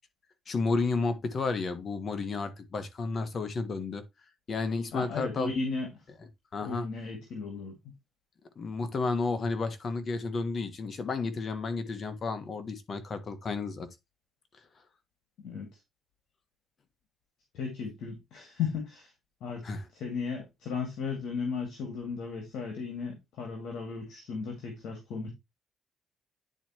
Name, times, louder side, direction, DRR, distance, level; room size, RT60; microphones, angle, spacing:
voice 1, 0.5-4.0 4.5-5.5 6.5-6.9 8.5-13.9 19.6-19.9, left 4 dB, 45° left, 1.4 m, -32 dB
voice 2, 4.9-6.0 6.6-7.8 15.4-15.7 17.5-19.1 19.4-19.7 19.9-25.3, left 5 dB, 80° left, 2.2 m, -35 dB
10.0 x 4.3 x 3.0 m
cardioid pair, 90°, 0 cm